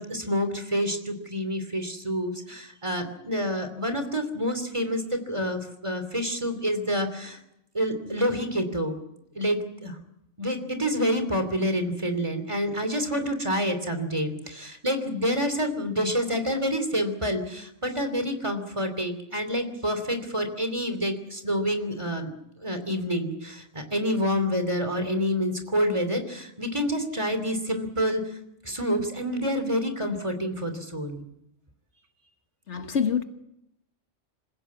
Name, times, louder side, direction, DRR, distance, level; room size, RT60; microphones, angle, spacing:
voice 1, 0.0-7.4 7.7-9.0 9.3-10.0 10.4-22.3 22.6-28.4 28.6-31.2, equal, 25° right, 3.0 m, -28 dB
voice 2, 32.7-33.2, left 7 dB, 70° left, 1.6 m, -25 dB
27.0 x 16.0 x 8.6 m
omnidirectional pair, 1.2 m